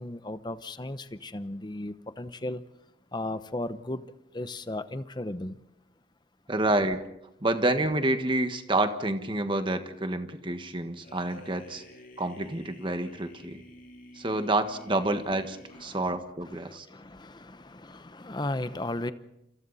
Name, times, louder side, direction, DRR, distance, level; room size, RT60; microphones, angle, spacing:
voice 1, 0.0-2.6 3.1-4.1 4.3-5.6 14.3-14.4 15.8-16.2 16.5-19.1, left 1 dB, 25° left, 0.9 m, -35 dB
voice 2, 6.5-7.1 7.4-11.8 12.2-13.6 14.1-16.9, right 2 dB, 25° right, 1.5 m, -28 dB
sound 1, 11.0-16.3, left 1 dB, 50° left, 7.5 m, -51 dB
28.5 x 27.0 x 4.2 m
head